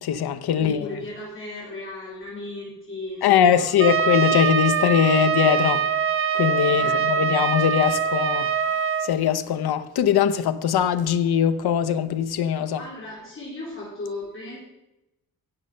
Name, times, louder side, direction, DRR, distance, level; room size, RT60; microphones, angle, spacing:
voice 1, 0.0-0.9 3.2-5.9 6.3-8.5 9.0-12.8, left 9 dB, 70° left, 0.9 m, -21 dB
voice 2, 0.6-4.0 6.8-7.3 12.8-14.6, left 2 dB, 30° left, 3.9 m, -36 dB
Trumpet, 3.8-9.1, right 7 dB, 35° right, 0.6 m, -23 dB
16.5 x 6.4 x 5.6 m
wide cardioid pair, 140°, 40 cm